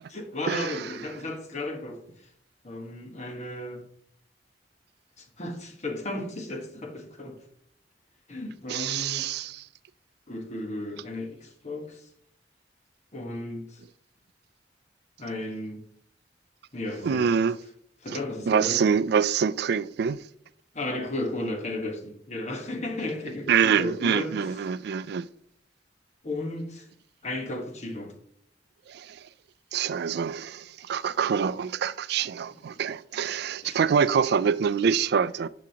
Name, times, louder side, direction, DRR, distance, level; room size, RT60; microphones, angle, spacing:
voice 1, 0.1-2.0 2.6-3.8 5.2-7.4 8.3-9.3 10.3-12.1 13.1-13.8 15.2-15.8 16.7-17.3 18.0-18.8 20.7-24.7 26.2-26.9 27.2-28.1 33.6-33.8, left 1 dB, 40° left, 1.3 m, -34 dB
voice 2, 8.7-9.6 17.0-17.6 18.5-20.2 23.5-25.3 28.9-29.2 29.7-35.5, right 7 dB, 65° right, 0.3 m, -25 dB
9.8 x 6.1 x 2.8 m
head